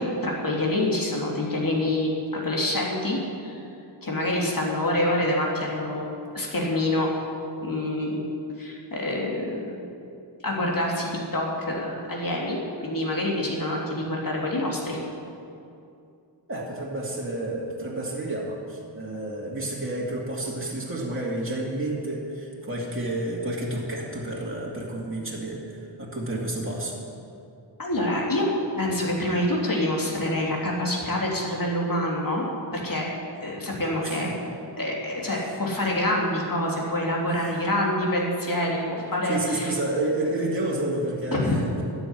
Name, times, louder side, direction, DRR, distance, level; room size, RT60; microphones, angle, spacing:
voice 1, 0.0-3.6 4.0-6.1 6.3-7.1 7.6-8.3 8.6-9.8 10.4-15.0 27.8-32.4 32.7-33.0 33.4-34.3 34.8-39.7 41.3-41.6, left 1 dB, 45° left, -3 dB, 3.1 m, -26 dB
voice 2, 16.5-27.0 34.0-34.3 35.3-35.6 37.3-37.6 39.3-41.7, right 1 dB, 30° right, -4 dB, 2.6 m, -30 dB
13.0 x 7.3 x 9.9 m, 2.6 s
wide cardioid pair, 80°, 45 cm